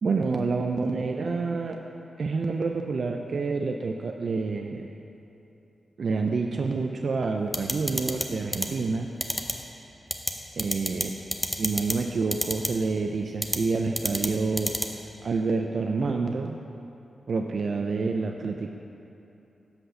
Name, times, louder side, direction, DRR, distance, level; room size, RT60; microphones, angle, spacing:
voice 1, 0.0-1.8 2.2-4.9 6.0-9.1 10.6-11.1 11.6-14.8 15.2-16.6 17.3-18.8, right 4 dB, 65° right, 3 dB, 0.3 m, -28 dB
sound 1, 7.5-8.2 8.5-8.7 9.2-9.5 10.1-10.3 10.6-11.0 11.3-11.9 12.3-12.7 13.4-13.6 14.0-14.3 14.6-14.9, equal, 5° left, 0.7 m, -26 dB
5.8 x 5.4 x 6.5 m, 2.9 s
cardioid pair, 50°, 0 cm